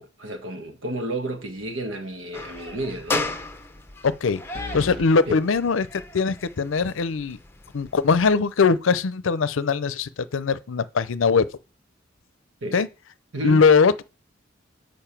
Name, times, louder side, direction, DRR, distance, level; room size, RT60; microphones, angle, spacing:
voice 1, 0.0-3.3 5.3-5.4 12.6-12.8 13.3-13.6, right 1 dB, 80° right, 1.4 m, -31 dB
sound 1, 1.4-1.9 2.2-2.3 4.5-5.1, left 1 dB, 50° right, 1.3 m, -37 dB
sound 2, 2.3-8.4, left 3 dB, 10° left, 0.7 m, -35 dB
voice 2, 4.7-7.4 7.7-11.4 12.7-12.9 13.4-14.0, left 5 dB, 80° left, 0.5 m, -21 dB
7.0 x 5.2 x 5.8 m
head